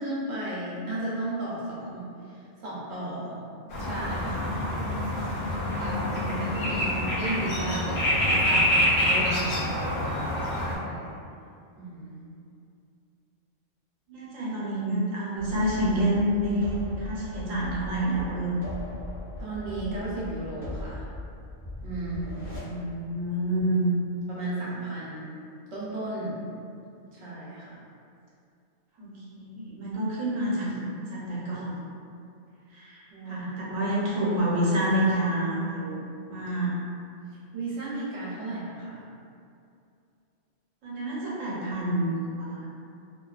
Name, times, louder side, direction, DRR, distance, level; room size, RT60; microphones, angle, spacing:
voice 1, 0.0-3.4 3.6-4.6 5.6-6.0 6.4-10.1 10.5-11.1 11.7-12.2 19.4-21.0 21.8-22.4 24.3-25.3 25.7-26.4 27.0-27.8 33.1-33.5 37.5-39.0, right 2 dB, 60° right, -7 dB, 0.9 m, -35 dB
sound 1, 3.7-10.8, left 1 dB, 55° left, 0.6 m, -26 dB
voice 2, 5.9-7.0 14.1-18.5 22.6-23.9 29.0-31.7 32.7-36.0 36.3-36.7 40.8-42.7, right 1 dB, 85° right, -7 dB, 1.1 m, -28 dB
sound 2, 15.4-22.6, left 1 dB, 10° right, 1.0 m, -39 dB
2.6 x 2.2 x 2.3 m, 2.5 s
omnidirectional pair, 1.3 m